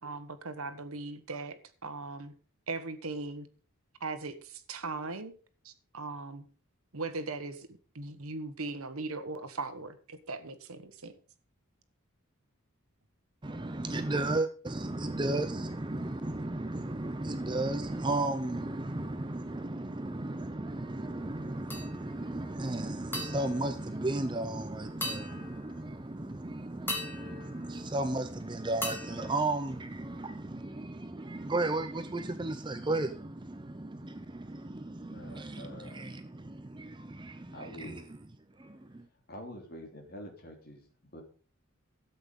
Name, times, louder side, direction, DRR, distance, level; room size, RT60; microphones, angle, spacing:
voice 1, 0.0-2.3 2.7-3.5 4.0-5.3 5.6-6.4 6.9-7.7 7.9-11.1, right 3 dB, 75° right, 11 dB, 1.4 m, -39 dB
voice 2, 13.4-38.0 38.6-39.1, right 2 dB, 20° right, 9 dB, 0.6 m, -34 dB
sound 1, 21.7-22.3 23.1-24.6 25.0-26.0 26.9-28.4 28.8-30.2, left 1 dB, 10° left, 2.5 m, -41 dB
voice 3, 35.0-36.0 37.5-38.0 38.9-39.0 39.3-41.2, equal, 45° left, 2 dB, 3.0 m, -47 dB
13.0 x 8.2 x 5.3 m, 0.40 s
head